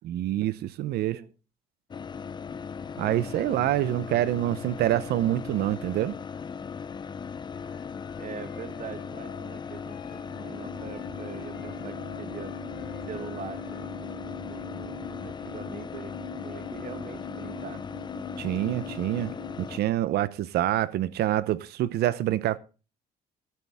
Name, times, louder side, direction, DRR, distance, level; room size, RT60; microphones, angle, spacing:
voice 1, 0.0-1.2 3.0-6.1 18.4-19.3 19.6-22.6, right 13 dB, 70° right, 0.8 m, -26 dB
voice 2, 0.8-1.3 3.1-3.6 8.2-12.5 13.0-17.8 18.2-18.3, right 7 dB, 45° right, 1.3 m, -43 dB
sound 1, 1.9-19.8, left 6 dB, 25° left, 0.5 m, -38 dB
Wind instrument woodwind instrument, 7.5-10.4 10.7-13.9, left 10 dB, 70° left, 3.4 m, -51 dB
sound 2, 10.0-19.6, left 1 dB, 25° right, 5.9 m, -44 dB
13.0 x 12.5 x 3.5 m
cardioid pair, 110°, 17 cm